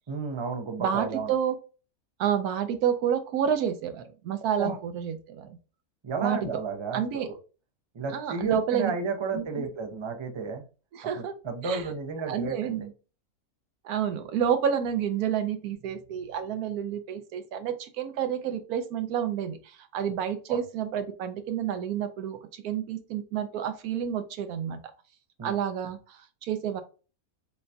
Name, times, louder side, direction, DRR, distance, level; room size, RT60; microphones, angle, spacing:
voice 1, 0.1-1.3 4.6-4.8 6.0-7.3 7.9-10.6 11.1-12.9 20.5-20.6 25.4-25.5, right 4 dB, 45° right, 4 dB, 0.3 m, -32 dB
voice 2, 0.8-1.6 2.2-5.6 6.2-6.4 6.9-7.3 8.1-8.9 9.3-9.7 10.9-11.3 11.6-11.9 12.3-12.9 13.8-24.8 25.4-26.8, right 8 dB, 85° right, 9 dB, 1.1 m, -29 dB
6.6 x 2.2 x 2.7 m, 0.35 s
omnidirectional pair, 1.6 m